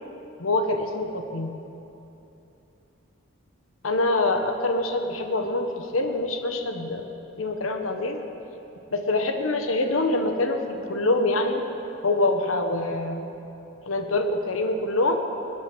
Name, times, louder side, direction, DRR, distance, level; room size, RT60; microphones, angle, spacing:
voice 1, 0.4-1.5 3.8-7.1 7.4-8.2 8.9-11.6 12.0-13.3 13.9-15.2, left 2 dB, 80° left, 5 dB, 1.2 m, -25 dB
21.5 x 10.0 x 6.2 m, 2.9 s
head